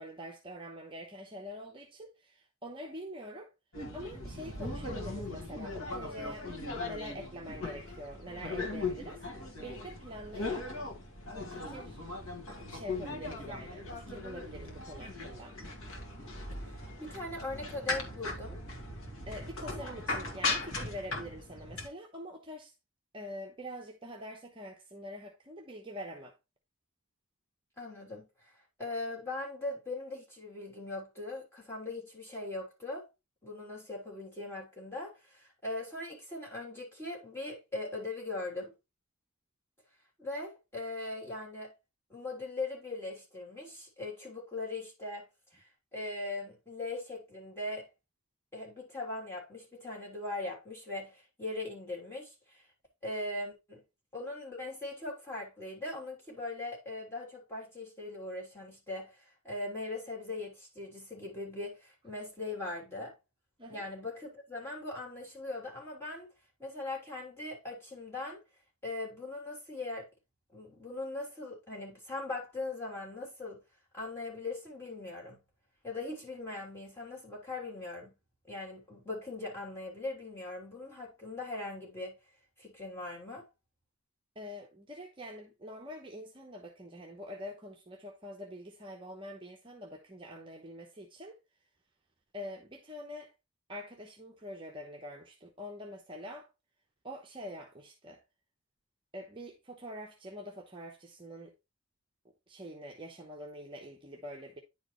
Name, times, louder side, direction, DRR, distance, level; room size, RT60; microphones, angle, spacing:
voice 1, 0.0-3.5 3.9-6.5 6.8-10.5 11.5-12.0 12.7-15.6 19.3-22.7 23.1-26.4 63.6-63.9 84.4-91.4 92.3-93.3 93.7-96.5 97.0-98.2 99.1-101.5 102.5-104.6, equal, 25° right, 0.9 m, -45 dB
sound 1, 3.7-21.9, left 3 dB, 75° left, 2.0 m, -39 dB
voice 2, 16.5-18.6 27.8-28.5 28.8-33.1 33.4-38.7 40.2-41.7 42.1-45.2 45.5-47.9 48.5-52.6 53.0-53.8 54.1-63.1 63.7-66.3 66.6-68.4 68.8-70.1 70.5-73.6 73.9-75.4 75.8-78.1 78.5-82.2 82.6-83.4, left 2 dB, 10° left, 3.0 m, -40 dB
10.0 x 4.7 x 3.1 m
head